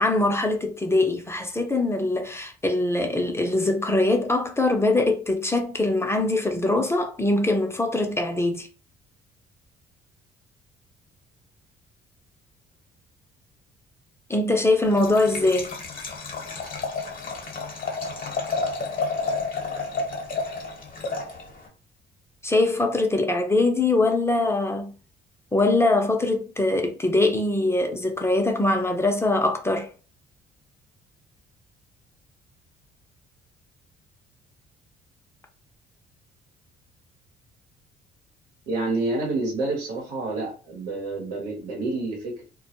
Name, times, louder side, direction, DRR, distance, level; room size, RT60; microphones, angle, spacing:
voice 1, 0.0-8.7 14.3-15.8 22.4-24.9 25.5-29.9, left 2 dB, 15° left, 0.6 m, -22 dB
Liquid, 14.8-21.7, left 3 dB, 50° left, 0.9 m, -31 dB
voice 2, 38.7-42.4, right 2 dB, 90° right, 1.0 m, -28 dB
2.2 x 2.0 x 2.9 m
supercardioid pair, 60°, 19 cm